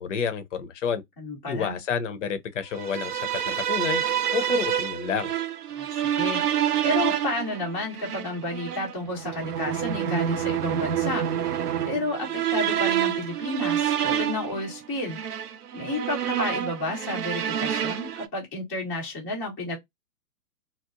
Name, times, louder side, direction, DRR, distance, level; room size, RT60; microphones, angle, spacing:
voice 1, 0.0-1.0 1.5-4.0 4.3-5.3, left 7 dB, 55° left, 0.6 m, -29 dB
voice 2, 1.2-1.8 5.8-6.4 6.8-11.2 11.8-15.2 15.7-19.8, left 2 dB, 5° left, 0.4 m, -31 dB
sound 1, 2.7-18.3, right 10 dB, 80° right, 0.6 m, -28 dB
2.8 x 2.0 x 2.4 m
figure-of-eight pair, 120°, 46 cm